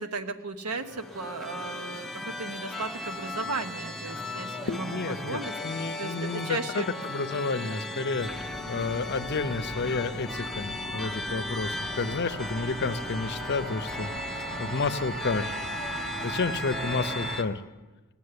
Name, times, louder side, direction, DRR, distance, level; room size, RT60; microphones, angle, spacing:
voice 1, 0.0-6.9, right 3 dB, 90° right, 9 dB, 1.0 m, -35 dB
sound 1, 0.7-17.4, left 2 dB, ahead, 0.7 m, -37 dB
sound 2, 3.6-11.6, left 1 dB, 65° right, 4.2 m, -59 dB
voice 2, 4.7-14.1 14.6-15.5 16.2-17.6, left 4 dB, 50° left, 11 dB, 0.6 m, -31 dB
sound 3, 8.2-17.4, right 1 dB, 45° right, 3.7 m, -39 dB
18.0 x 7.2 x 9.8 m, 1.2 s
head